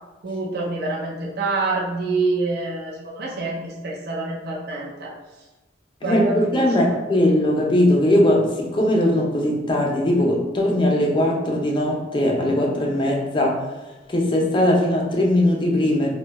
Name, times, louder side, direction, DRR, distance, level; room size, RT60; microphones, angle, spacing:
voice 1, 0.2-5.2 6.0-7.0, right 2 dB, 55° right, -2 dB, 0.5 m, -26 dB
voice 2, 6.0-13.7 14.1-16.1, left 1 dB, 25° left, -1 dB, 0.5 m, -20 dB
2.7 x 2.2 x 3.9 m, 1.1 s
head